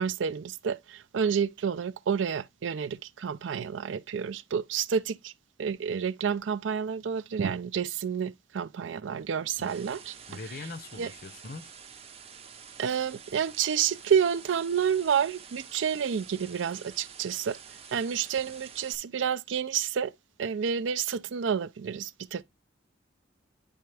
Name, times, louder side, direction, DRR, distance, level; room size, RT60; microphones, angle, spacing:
voice 1, 0.0-5.3 5.6-10.1 11.0-11.1 12.8-17.6 17.9-20.1 20.4-22.4, right 7 dB, 80° right, 0.4 m, -29 dB
sound 1, 9.2-19.0, right 7 dB, 30° right, 0.6 m, -49 dB
voice 2, 10.3-11.7, left 3 dB, 50° left, 0.6 m, -41 dB
10.0 x 3.4 x 3.3 m
head